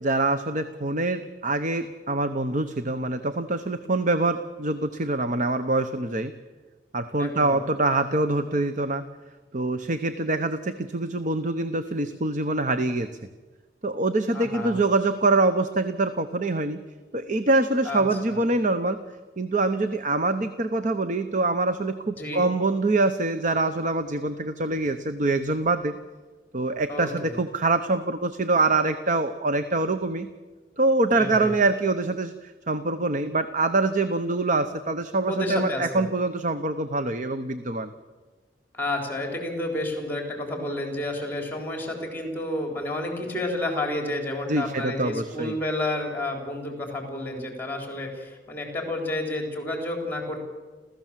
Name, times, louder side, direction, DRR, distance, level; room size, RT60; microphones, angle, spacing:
voice 1, 0.0-6.3 6.9-9.0 9.5-13.1 13.8-16.8 17.1-19.0 19.4-25.9 26.5-30.3 30.8-37.9 44.5-45.5, right 2 dB, 50° right, 9 dB, 1.0 m, -25 dB
voice 2, 7.2-7.6 14.3-14.8 17.8-18.0 18.3-18.4 22.2-22.5 26.9-27.3 31.1-31.5 35.3-36.0 38.7-50.4, left 1 dB, 10° left, 3 dB, 4.0 m, -30 dB
30.0 x 14.5 x 7.6 m, 1.3 s
head